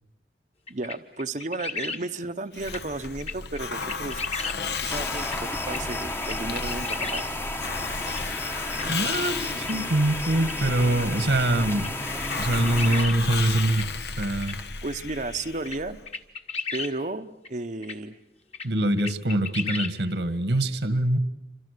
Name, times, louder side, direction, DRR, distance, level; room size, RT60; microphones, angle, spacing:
sound 1, 0.7-2.0 2.7-2.8 3.2-4.6 5.2-5.4 5.7-5.8 6.2-7.2 8.1-8.2 8.7-8.8 9.6-9.7 10.4-10.5 11.8-11.9 12.2-13.2 13.7-13.8 14.4-14.5 15.1-15.2 15.6-15.8 16.1-16.9 17.4-17.5 17.8-17.9 18.5-18.7 19.0-19.9, left 4 dB, 35° left, 1.8 m, -33 dB
voice 1, 0.7-4.2 4.8-7.3 14.8-16.0 16.7-18.2, right 2 dB, 45° right, 8 dB, 0.9 m, -33 dB
Hiss, 2.5-16.0, left 4 dB, 70° left, 1.2 m, -34 dB
sound 2, 4.9-13.1, left 1 dB, 15° left, 1.1 m, -33 dB
voice 2, 8.9-11.9 12.4-13.9 14.2-14.6 18.6-21.2, right 1 dB, 80° right, 10 dB, 1.8 m, -24 dB
29.0 x 26.5 x 6.7 m, 0.91 s
head